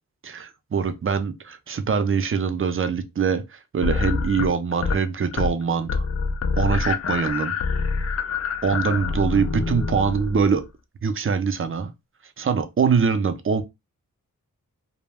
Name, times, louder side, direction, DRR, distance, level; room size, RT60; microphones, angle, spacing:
voice 1, 0.2-6.1 6.6-7.6 8.6-10.7 11.0-11.9 12.4-13.6, right 6 dB, 40° right, 0.5 m, -23 dB
sound 1, 3.8-5.0 5.3-5.6 5.9-10.6, left 5 dB, 45° left, 0.4 m, -26 dB
2.2 x 2.0 x 3.3 m
cardioid pair, 45°, 35 cm